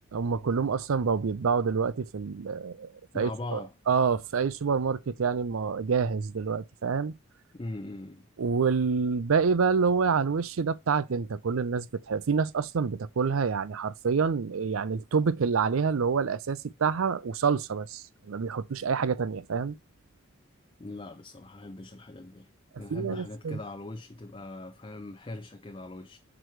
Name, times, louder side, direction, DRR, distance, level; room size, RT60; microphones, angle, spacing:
voice 1, 0.1-7.1 8.4-19.8 22.9-23.6, right 5 dB, 75° right, 0.5 m, -27 dB
voice 2, 3.1-3.7 7.5-8.3 20.8-26.2, left 2 dB, 25° left, 0.5 m, -40 dB
6.1 x 4.8 x 4.5 m
head